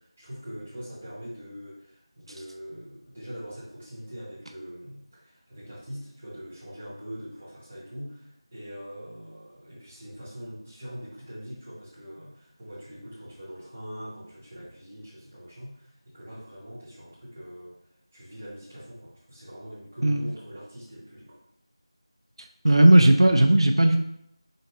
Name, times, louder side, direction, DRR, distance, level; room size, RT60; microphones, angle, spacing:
voice 1, 0.0-17.7 18.1-21.4, equal, 10° right, -10 dB, 0.8 m, -42 dB
voice 2, 22.6-24.0, right 1 dB, 65° right, 4 dB, 0.4 m, -16 dB
5.1 x 2.5 x 4.2 m, 0.75 s
figure-of-eight pair, 180°, 3 cm